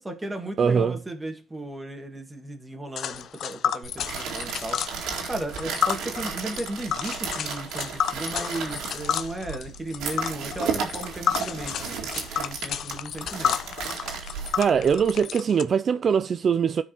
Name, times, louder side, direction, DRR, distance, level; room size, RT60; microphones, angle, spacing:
voice 1, 0.0-13.6, right 1 dB, 15° right, 1.9 m, -35 dB
voice 2, 0.6-1.0 14.6-16.8, right 7 dB, 50° right, 0.3 m, -22 dB
Tick, 3.0-15.6, left 9 dB, 70° left, 0.6 m, -31 dB
sound 1, 3.8-15.2, right 6 dB, 90° right, 2.1 m, -34 dB
14.5 x 4.8 x 2.9 m
cardioid pair, 90°, 0 cm